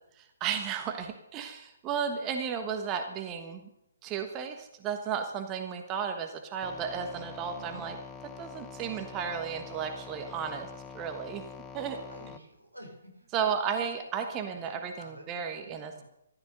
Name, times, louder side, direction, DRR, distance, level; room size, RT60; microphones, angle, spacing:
voice 1, 0.2-3.7 4.0-8.0 8.4-10.7 10.9-11.4 11.7-12.0 13.3-16.0, right 7 dB, 20° right, 5 dB, 1.3 m, -34 dB
sound 1, 6.6-12.4, left 5 dB, 15° left, 0.9 m, -45 dB
voice 2, 7.5-7.9 11.7-13.3 13.7-13.9 14.2-16.0, equal, 90° right, 2 dB, 4.8 m, -50 dB
14.5 x 13.0 x 6.7 m, 0.83 s
figure-of-eight pair, 130°, 0 cm